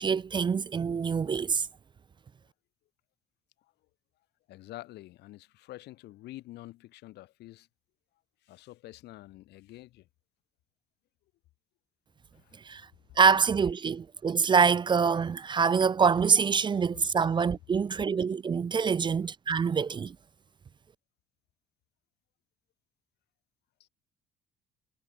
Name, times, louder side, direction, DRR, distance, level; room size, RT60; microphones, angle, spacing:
voice 1, 0.0-1.7 12.6-12.8 13.2-20.2, right 6 dB, 30° right, 0.5 m, -25 dB
voice 2, 4.5-7.7 8.4-10.1 12.4-12.5 13.1-13.2 23.8-23.9, left 17 dB, 80° left, 4.7 m, -47 dB
cardioid pair, 110°, 17 cm